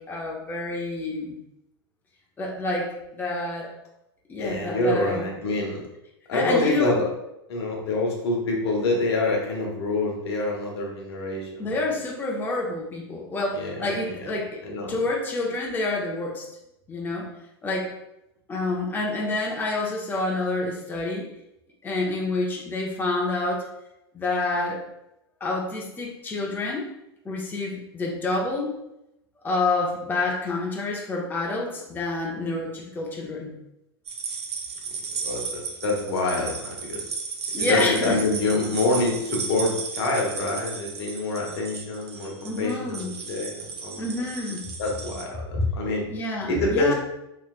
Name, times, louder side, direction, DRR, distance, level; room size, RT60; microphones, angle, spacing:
voice 1, 0.0-1.4 2.4-3.7 4.3-5.2 6.3-7.0 11.6-14.6 14.9-16.4 16.9-17.3 17.6-17.9 18.5-21.3 21.8-23.7 24.1-24.8 25.4-26.9 27.2-28.7 29.4-33.6 37.5-38.2 42.4-43.1 44.0-44.6 45.5-45.7 46.1-46.9, left 2 dB, 15° left, -2 dB, 0.6 m, -28 dB
voice 2, 4.4-5.8 6.3-7.1 7.5-11.8 13.5-14.3 14.6-15.0 35.2-37.0 37.5-44.0 44.8-46.0 46.5-46.9, left 2 dB, 75° left, -1 dB, 1.0 m, -26 dB
sound 1, 34.1-45.2, right 5 dB, 85° right, 0.5 m, -34 dB
3.2 x 3.1 x 2.4 m, 0.86 s
hypercardioid pair, 105°, 14 cm